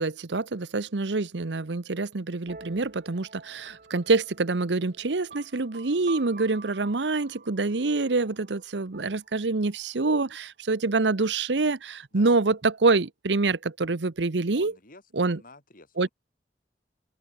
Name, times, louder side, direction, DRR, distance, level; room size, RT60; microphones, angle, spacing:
voice 1, 0.0-14.7 15.2-15.4 16.0-16.1, right 3 dB, 85° right, 0.9 m, -26 dB
sound 1, 2.5-10.0, right 4 dB, 50° right, 2.6 m, -48 dB
voice 2, 14.5-16.1, left 2 dB, 55° left, 7.6 m, -50 dB
open air
head